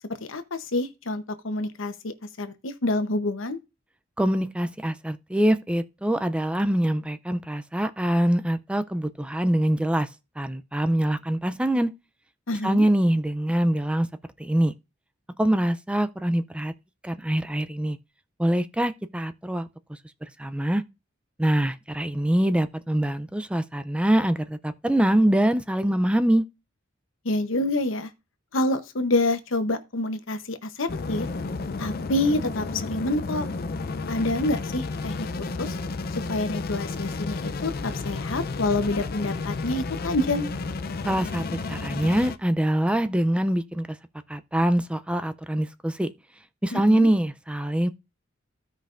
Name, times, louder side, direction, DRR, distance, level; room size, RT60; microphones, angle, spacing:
voice 1, 0.3-3.6 12.5-12.8 27.2-28.1 28.5-31.3 31.8-32.7 32.9-33.5 34.1-35.7 36.3-40.5 46.7-47.1, left 2 dB, 80° left, 0.9 m, -27 dB
voice 2, 4.2-10.1 10.4-11.9 12.6-14.1 14.4-14.7 15.4-16.7 17.0-18.0 18.4-19.7 20.4-20.8 21.4-26.4 41.0-44.0 44.3-46.1 46.6-47.9, right 1 dB, 5° right, 0.4 m, -24 dB
sound 1, 30.9-42.4, left 3 dB, 50° left, 0.5 m, -32 dB
15.5 x 5.2 x 2.5 m
head